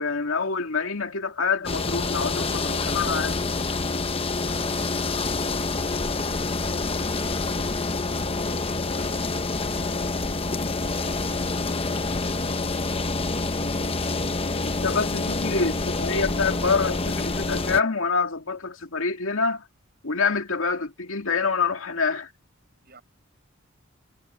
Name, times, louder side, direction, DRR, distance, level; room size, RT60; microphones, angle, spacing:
voice 1, 0.0-3.4 14.8-19.6 20.0-22.3, left 4 dB, 85° left, 2.2 m, -26 dB
sound 1, 1.6-17.8, left 3 dB, 30° left, 0.9 m, -27 dB
voice 2, 22.8-23.0, right 4 dB, 50° right, 8.0 m, -56 dB
head